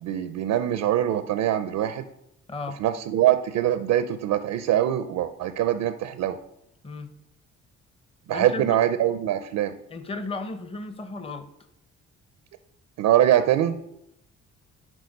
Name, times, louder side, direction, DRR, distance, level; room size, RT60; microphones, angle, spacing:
voice 1, 0.0-2.1 2.8-6.4 8.3-9.7 13.0-13.8, right 11 dB, 85° right, 11 dB, 0.6 m, -23 dB
voice 2, 8.3-8.8 9.9-11.5, left 3 dB, 20° left, 9 dB, 0.8 m, -34 dB
11.0 x 4.3 x 5.3 m, 0.79 s
cardioid pair, 90°, 30 cm